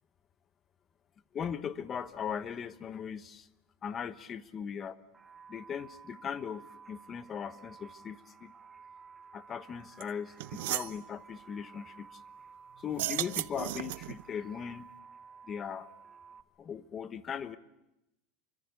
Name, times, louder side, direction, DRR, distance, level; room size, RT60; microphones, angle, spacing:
voice 1, 1.3-3.5 3.8-5.0 5.5-8.5 9.3-12.2 12.8-14.8 15.5-15.9 16.6-17.6, left 7 dB, 25° left, 13 dB, 1.1 m, -39 dB
sound 1, 5.1-16.4, right 5 dB, 10° right, 1.1 m, -54 dB
sound 2, 10.0-10.1 10.4-10.9 12.9-14.2, right 17 dB, 70° right, 1.0 m, -35 dB
29.0 x 25.0 x 8.2 m, 0.92 s
supercardioid pair, 165°, 0 cm